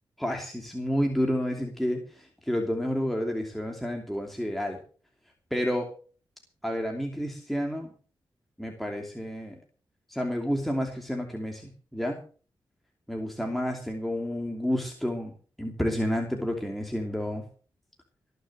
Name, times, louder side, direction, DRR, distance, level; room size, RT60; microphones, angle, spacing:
voice 1, 0.2-4.8 5.5-5.9 6.6-7.9 8.6-9.6 10.1-12.2 13.1-15.3 15.6-17.4, equal, ahead, 2 dB, 2.8 m, -30 dB
20.0 x 6.8 x 7.8 m, 0.41 s
cardioid pair, 90°, 9 cm